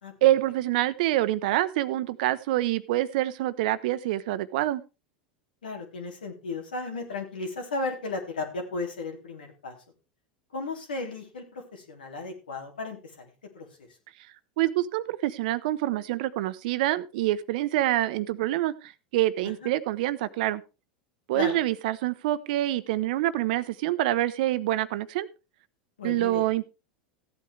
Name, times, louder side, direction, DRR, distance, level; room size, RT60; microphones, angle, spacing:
voice 1, 0.2-4.8 14.6-20.6 21.3-25.3 26.0-26.7, right 15 dB, 65° right, 15 dB, 0.9 m, -26 dB
voice 2, 5.6-9.7 10.5-13.2 13.5-13.7 19.4-19.7 21.3-21.6 26.0-26.5, left 3 dB, 85° left, 2 dB, 3.4 m, -35 dB
15.5 x 8.7 x 3.4 m, 0.30 s
hypercardioid pair, 90°, 5 cm